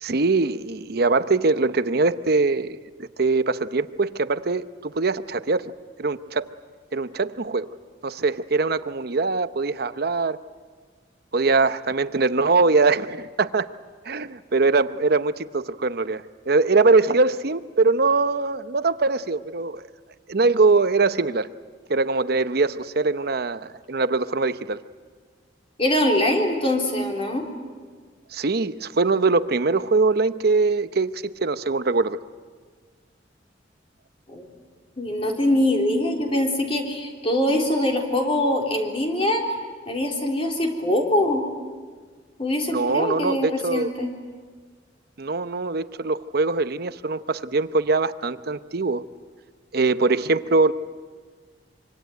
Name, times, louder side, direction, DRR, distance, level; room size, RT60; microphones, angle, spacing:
voice 1, 0.0-5.7 6.0-6.5 6.9-7.7 8.0-10.4 11.3-13.7 14.0-19.8 20.3-21.5 21.9-24.8 28.3-32.2 42.7-43.9 45.2-49.1 49.7-50.7, right 3 dB, 55° right, 12 dB, 0.8 m, -22 dB
voice 2, 25.8-27.4 34.3-34.5 35.0-39.5 39.9-41.4 42.4-44.1, left 1 dB, 30° left, 1 dB, 3.7 m, -23 dB
25.5 x 25.0 x 9.4 m, 1.5 s
head